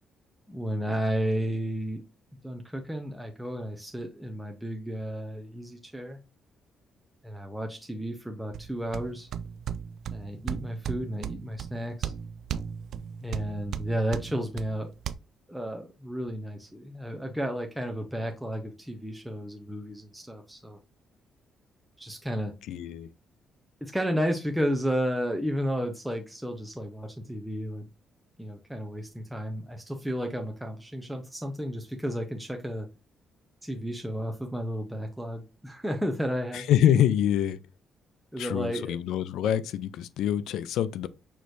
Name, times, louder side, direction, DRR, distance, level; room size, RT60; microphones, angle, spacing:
voice 1, 0.5-2.0 2.4-6.2 7.2-9.3 10.1-12.1 13.2-14.9 15.5-20.8 22.0-22.5 23.8-27.9 28.4-32.9 33.6-36.7 38.3-38.9, equal, 5° right, 0.8 m, -32 dB
sound 1, 8.5-15.1, right 8 dB, 70° right, 0.3 m, -36 dB
voice 2, 22.7-23.1 36.5-37.6 38.4-41.1, left 10 dB, 85° left, 0.4 m, -25 dB
6.2 x 3.1 x 2.7 m
cardioid pair, 90°, 0 cm